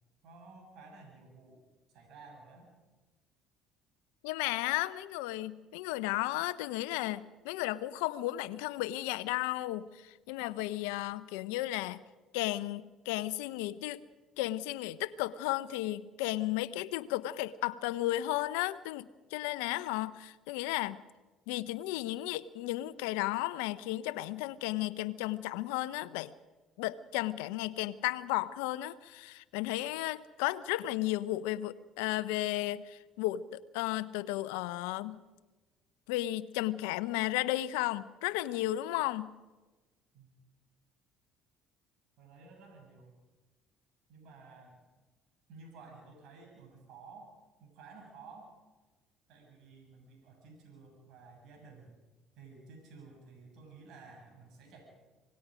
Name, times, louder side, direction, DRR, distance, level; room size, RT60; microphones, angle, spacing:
voice 1, 0.2-1.6 1.9-2.7 40.1-40.3 42.2-43.2 44.1-44.8 45.5-47.3 47.6-48.5 49.3-52.0 52.4-54.8, right 4 dB, 65° right, 1 dB, 7.4 m, -53 dB
voice 2, 4.2-12.0 12.3-14.0 14.4-21.0 21.5-26.3 26.8-35.2 36.1-39.3, left 16 dB, 80° left, 17 dB, 0.7 m, -34 dB
26.5 x 19.0 x 5.1 m, 1.2 s
hypercardioid pair, 60°, 0 cm